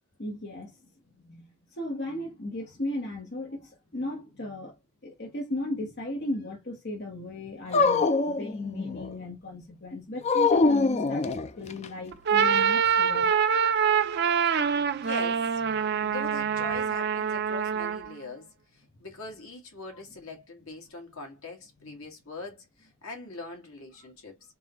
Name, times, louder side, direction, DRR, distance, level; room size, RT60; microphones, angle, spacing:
voice 1, 0.2-0.7 1.2-1.5 1.7-4.7 5.0-13.3 21.8-21.9, left 1 dB, 50° left, 1.1 m, -36 dB
Dog, 7.7-9.1 10.2-11.9, left 4 dB, 30° left, 0.4 m, -24 dB
sound 1, 12.1-18.1, right 7 dB, 50° right, 0.4 m, -25 dB
voice 2, 15.0-15.6 16.0-24.4, left 3 dB, 70° left, 1.9 m, -42 dB
3.9 x 3.7 x 3.0 m
head